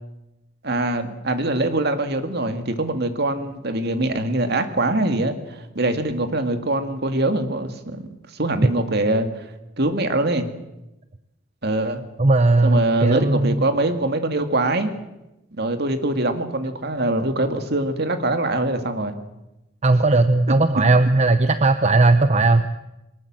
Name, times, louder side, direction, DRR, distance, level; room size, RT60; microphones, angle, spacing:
voice 1, 0.6-8.0 8.3-9.4 9.8-10.5 11.6-12.0 12.6-14.9 15.6-19.1, right 2 dB, 55° right, 8 dB, 2.2 m, -23 dB
voice 2, 12.2-13.6 19.8-22.7, right 2 dB, 35° right, 11 dB, 0.8 m, -17 dB
22.0 x 20.0 x 7.7 m, 0.94 s
head